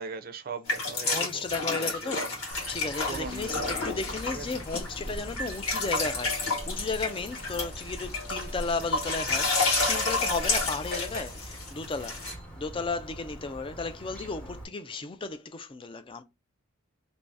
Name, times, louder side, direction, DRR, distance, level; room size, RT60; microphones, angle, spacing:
voice 1, 0.0-2.3 3.1-4.5, right 5 dB, 40° right, 0.5 m, -39 dB
sound 1, 0.7-12.3, left 3 dB, 80° left, 1.5 m, -30 dB
voice 2, 1.0-2.3 2.7-16.2, left 4 dB, 25° left, 0.3 m, -34 dB
Chirp tweet, 2.5-14.6, right 1 dB, 5° left, 0.7 m, -44 dB
sound 2, 3.1-11.4, left 1 dB, 40° left, 1.0 m, -42 dB
3.0 x 2.6 x 3.4 m
head